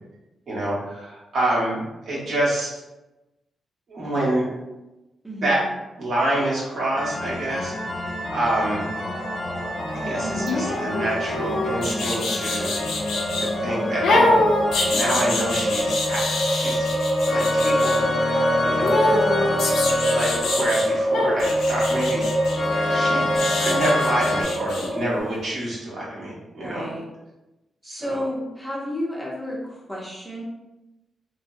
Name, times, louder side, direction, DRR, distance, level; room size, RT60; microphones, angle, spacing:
voice 1, 0.5-2.7 3.9-4.5 5.4-5.6 6.0-7.7 8.3-8.9 9.9-12.8 13.4-14.4 14.9-16.8 17.3-19.0 20.1-22.3 22.9-23.3 23.6-26.9 27.8-28.3, right 1 dB, 50° right, -6 dB, 1.1 m, -27 dB
voice 2, 5.2-5.6 10.2-10.5 19.1-19.5 26.6-27.0 27.8-30.4, equal, ahead, -5 dB, 0.7 m, -32 dB
sound 1, 7.0-24.4, left 1 dB, 40° left, 0.6 m, -29 dB
sound 2, 7.4-25.2, equal, 75° right, 1.0 m, -26 dB
sound 3, 10.5-13.5 14.0-18.0 18.8-20.9 21.1-24.9 25.2-25.3, left 2 dB, 85° left, 0.5 m, -25 dB
3.1 x 2.0 x 2.6 m, 0.99 s
wide cardioid pair, 135°, 0 cm